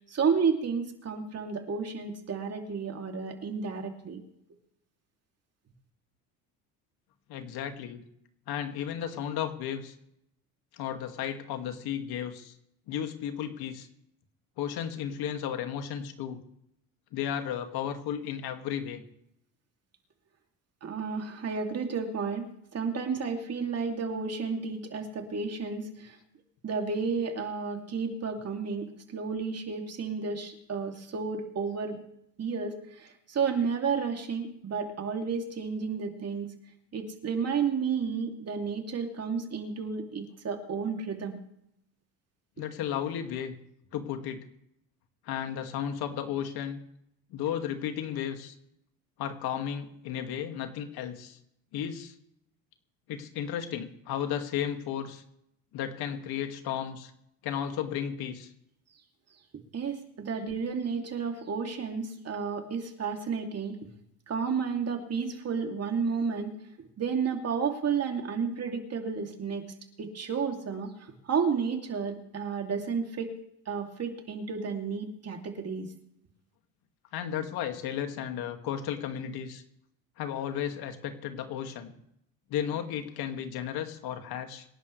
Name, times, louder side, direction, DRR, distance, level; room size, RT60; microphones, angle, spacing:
voice 1, 0.1-4.2 20.8-22.4 22.7-26.2 26.6-32.0 32.4-36.5 36.9-41.4 59.7-63.8 64.3-66.6 67.0-69.6 70.0-73.3 73.7-75.9, right 5 dB, 40° right, 3 dB, 2.8 m, -32 dB
voice 2, 7.3-8.0 8.5-9.9 10.8-12.5 12.9-13.9 14.6-16.4 17.1-19.0 42.6-43.5 43.9-44.4 45.3-46.8 47.3-48.5 49.2-51.4 51.7-52.1 53.1-55.2 55.7-57.1 57.4-58.5 77.1-79.6 80.2-81.9 82.5-84.7, left 9 dB, 70° left, 6 dB, 2.2 m, -34 dB
26.0 x 11.5 x 3.3 m, 0.76 s
supercardioid pair, 90°, 40 cm